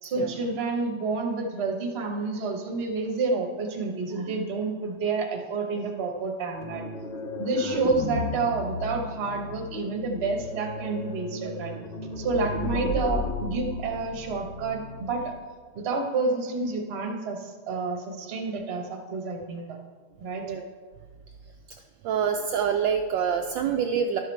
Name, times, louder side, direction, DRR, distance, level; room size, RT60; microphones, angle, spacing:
voice 1, 0.0-6.8 7.4-11.7 12.2-15.3 15.7-19.8 20.2-20.4, right 3 dB, 40° right, 2 dB, 1.0 m, -29 dB
sound 1, 6.6-15.4, left 2 dB, 85° left, 0.4 m, -34 dB
voice 2, 22.0-24.2, right 7 dB, 75° right, 3 dB, 1.1 m, -26 dB
12.0 x 5.8 x 4.5 m, 1.5 s
omnidirectional pair, 2.2 m